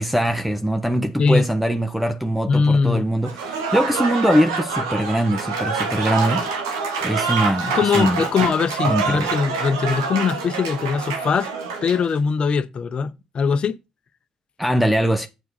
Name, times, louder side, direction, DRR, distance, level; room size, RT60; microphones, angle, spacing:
voice 1, 0.0-6.4 7.0-8.2 8.8-9.3 14.6-15.3, equal, 5° right, 1.0 m, -22 dB
voice 2, 2.5-3.0 7.7-11.5 11.8-13.8, left 5 dB, 55° left, 0.9 m, -21 dB
Applause / Crowd, 3.2-12.1, right 4 dB, 90° right, 1.4 m, -26 dB
8.0 x 4.6 x 5.5 m
hypercardioid pair, 45°, 2 cm